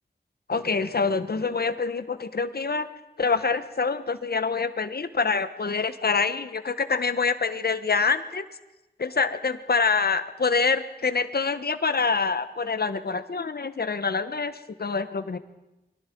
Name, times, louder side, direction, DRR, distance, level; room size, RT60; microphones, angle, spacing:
voice 1, 0.5-2.9 3.2-8.5 9.0-15.4, left 4 dB, 70° left, 11 dB, 1.2 m, -26 dB
30.0 x 24.0 x 4.6 m, 0.99 s
wide cardioid pair, 85°, 17 cm